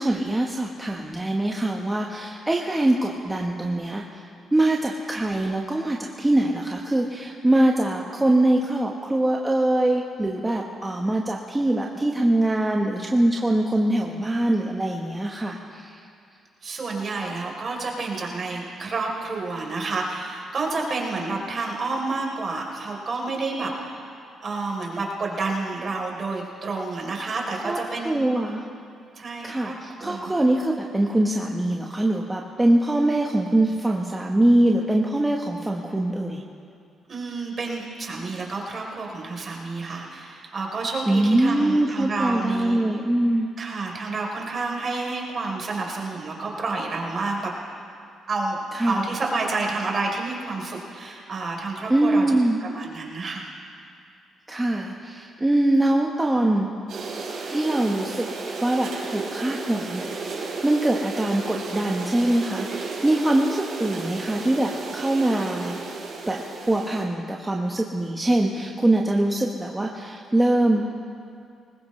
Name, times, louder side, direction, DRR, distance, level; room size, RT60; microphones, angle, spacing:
voice 1, 0.0-4.2 4.5-16.0 27.6-27.8 28.0-28.6 29.4-36.4 41.1-43.5 48.7-49.0 51.9-52.6 54.5-56.7 57.4-58.2 58.6-65.8 66.3-71.0, right 1 dB, 15° right, -1 dB, 1.1 m, -23 dB
voice 2, 16.6-24.0 24.4-28.3 29.2-29.7 30.0-30.3 37.1-42.8 43.6-47.5 48.3-48.6 48.9-53.4, right 3 dB, 45° right, -1 dB, 3.5 m, -29 dB
sound 1, 56.9-67.0, right 4 dB, 70° right, 4.7 m, -33 dB
21.0 x 19.0 x 3.2 m, 2.4 s
cardioid pair, 90°, 0 cm